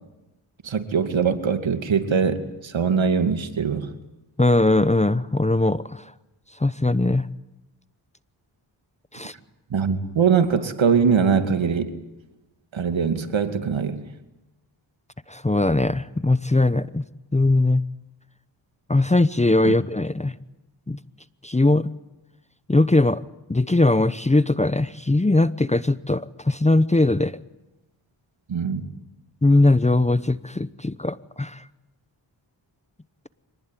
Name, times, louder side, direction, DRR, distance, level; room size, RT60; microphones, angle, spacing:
voice 1, 0.6-3.9 9.7-12.0 12.7-14.0 19.6-19.7 28.5-28.9, right 6 dB, 70° right, 8 dB, 2.5 m, -22 dB
voice 2, 4.4-6.1 6.6-7.3 9.1-9.3 15.3-17.0 17.3-17.8 18.9-20.3 20.9-21.0 21.4-21.9 22.7-23.2 23.5-27.4 29.4-31.6, left 2 dB, 15° left, 15 dB, 0.9 m, -20 dB
25.5 x 20.0 x 9.2 m, 0.99 s
cardioid pair, 50°, 48 cm